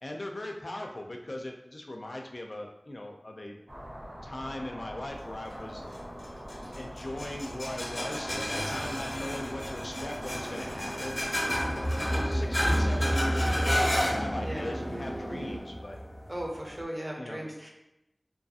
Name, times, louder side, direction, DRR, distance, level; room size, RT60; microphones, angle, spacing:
voice 1, 0.0-3.6 4.2-5.8 6.7-11.2 11.7-16.0 17.2-17.4, left 1 dB, 75° left, 2 dB, 0.3 m, -39 dB
sound 1, 3.7-12.2, equal, 65° right, 1.5 m, -44 dB
sound 2, 4.0-15.6, right 1 dB, 85° right, 0.4 m, -43 dB
sound 3, 5.5-16.8, equal, 35° left, 0.6 m, -31 dB
voice 2, 14.4-14.8 16.3-17.7, right 1 dB, 35° right, -1 dB, 0.6 m, -37 dB
2.6 x 2.3 x 2.7 m, 0.87 s
wide cardioid pair, 45°, 0 cm